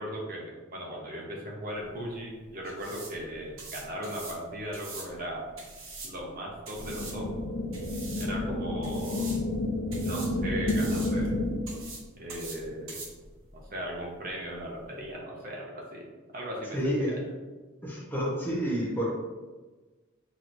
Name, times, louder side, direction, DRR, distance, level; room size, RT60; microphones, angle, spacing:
voice 1, 0.0-5.4 6.0-7.3 8.2-9.3 9.9-11.4 12.2-12.9 13.7-16.0 16.3-17.2, equal, 45° right, -2 dB, 0.8 m, -37 dB
sound 1, 1.7-15.2, right 3 dB, 70° right, 1.1 m, -45 dB
sound 2, 6.8-11.8, left 1 dB, 60° left, 0.7 m, -30 dB
voice 2, 16.7-17.1 17.8-19.1, equal, 10° left, -5 dB, 0.9 m, -29 dB
6.0 x 3.1 x 2.6 m, 1.3 s
head